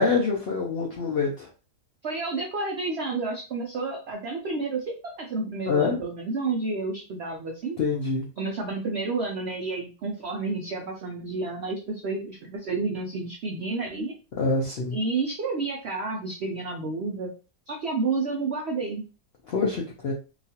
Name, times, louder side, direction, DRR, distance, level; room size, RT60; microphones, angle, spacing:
voice 1, 0.0-1.5 5.7-6.0 7.8-8.3 14.4-15.0 19.5-20.1, left 4 dB, 65° left, -1 dB, 0.6 m, -25 dB
voice 2, 2.0-7.8 8.4-14.2 14.9-17.3 17.7-19.0, right 3 dB, 80° right, 1 dB, 0.5 m, -30 dB
2.9 x 2.3 x 2.8 m, 0.33 s
omnidirectional pair, 1.7 m